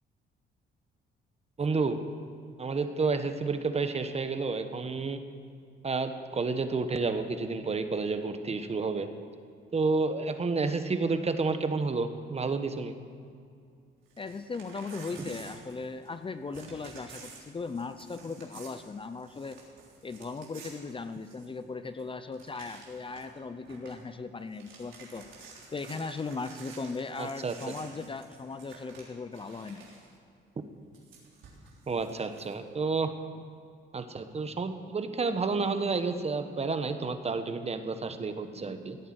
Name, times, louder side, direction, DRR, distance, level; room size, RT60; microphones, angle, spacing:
voice 1, 1.6-2.0 2.6-5.2 5.8-9.1 9.7-12.9 27.2-27.7 31.9-33.1 33.9-39.0, right 4 dB, 30° right, 8 dB, 1.2 m, -30 dB
Crumpling crinkling / Tearing, 14.1-16.2 16.5-21.6 22.0-22.1 22.3-23.4 23.6-24.0 24.4-30.1 30.9-32.5, right 4 dB, 80° right, 3.6 m, -51 dB
voice 2, 14.2-19.6 20.0-25.3 25.7-29.9, left 4 dB, 25° left, 10 dB, 0.6 m, -38 dB
17.0 x 9.2 x 7.7 m, 2.3 s
cardioid pair, 90°, 20 cm